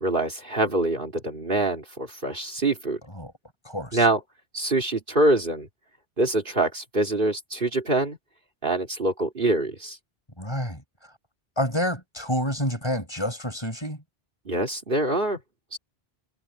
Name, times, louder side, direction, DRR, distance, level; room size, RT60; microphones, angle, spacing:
voice 1, 0.0-3.0 3.9-4.2 4.5-5.7 6.2-8.2 8.6-10.0 14.5-15.4 15.7-15.8, right 2 dB, 55° right, 3.0 m, -24 dB
voice 2, 3.6-4.0 10.4-10.8 11.6-14.0, equal, 25° left, 7.0 m, -28 dB
omnidirectional pair, 1.1 m